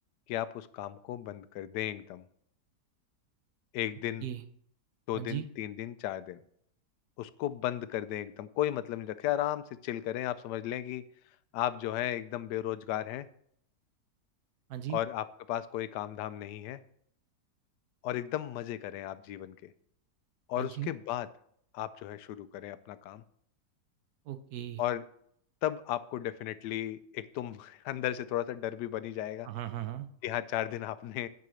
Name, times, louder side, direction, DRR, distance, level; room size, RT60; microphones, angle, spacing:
voice 1, 0.3-2.2 3.7-4.2 5.1-6.4 7.2-11.0 11.5-13.3 14.9-16.8 18.0-19.7 20.5-21.3 21.7-23.2 24.8-25.0 25.6-29.5 30.2-31.3, left 12 dB, 85° left, 14 dB, 1.2 m, -35 dB
voice 2, 5.1-5.4 14.7-15.0 20.6-20.9 24.2-24.8 29.4-30.1, right 12 dB, 70° right, 11 dB, 1.1 m, -37 dB
9.6 x 5.0 x 6.2 m, 0.67 s
omnidirectional pair, 1.7 m